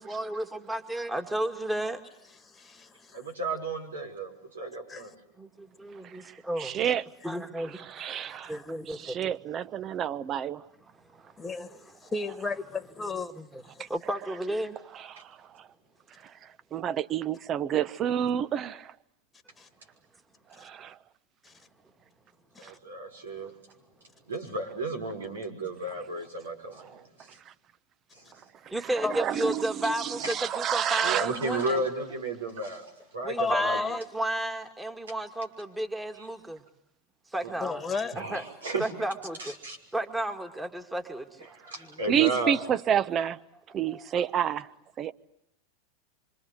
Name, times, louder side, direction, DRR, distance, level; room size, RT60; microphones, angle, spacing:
voice 1, 0.0-2.0 5.4-6.8 7.2-7.8 8.5-9.3 13.3-13.6 13.9-14.8 28.7-31.8 33.2-36.6 37.3-37.8 38.2-38.4 38.8-39.5 39.9-41.5 41.8-41.9 43.9-44.0, right 1 dB, 10° right, 2.2 m, -33 dB
voice 2, 2.5-3.2 4.9-5.1 8.3-8.6 11.4-13.3 13.8-13.9 19.6-19.7 21.4-21.5 22.5-22.7 29.0-29.1 31.1-31.2 33.4-34.0 37.6-38.2, left 4 dB, 15° left, 1.7 m, -33 dB
voice 3, 3.1-5.1 22.6-23.5 24.3-26.9 27.2-27.3 28.1-28.2 30.2-30.3 31.0-32.8 33.1-33.8 36.2-36.3 38.1-38.9 39.4-39.8 41.6-42.6 44.1-44.2, right 2 dB, 90° right, 5.9 m, -33 dB
voice 4, 6.0-7.0 7.6-8.6 8.9-10.7 13.8-13.9 14.9-15.7 16.2-18.9 20.6-21.0 22.6-22.7 26.8-27.0 27.4-27.5 28.6-31.6 42.0-43.4 43.7-44.7 45.0-45.1, right 9 dB, 35° right, 1.0 m, -30 dB
26.0 x 26.0 x 8.2 m
hypercardioid pair, 100°, 0 cm